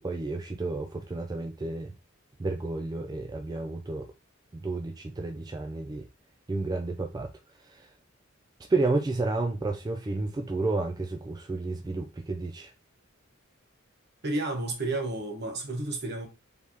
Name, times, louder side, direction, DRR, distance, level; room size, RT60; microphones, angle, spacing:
voice 1, 0.0-1.9 2.4-4.1 4.5-6.1 6.5-7.3 7.6-7.9 8.7-12.7, right 3 dB, 20° right, 0.3 m, -31 dB
voice 2, 14.2-16.3, right 2 dB, 50° right, 1.2 m, -31 dB
4.5 x 3.4 x 2.9 m
head